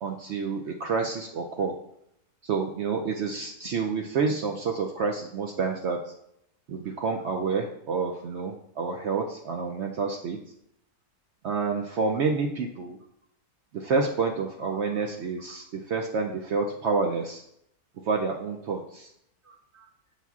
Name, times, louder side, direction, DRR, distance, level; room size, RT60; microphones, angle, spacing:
voice 1, 0.0-1.8 2.4-6.1 6.7-10.4 11.4-13.0 13.7-17.4 18.0-19.1 19.5-19.9, right 4 dB, 75° right, 2 dB, 0.6 m, -29 dB
7.3 x 5.7 x 2.4 m, 0.76 s
omnidirectional pair, 1.6 m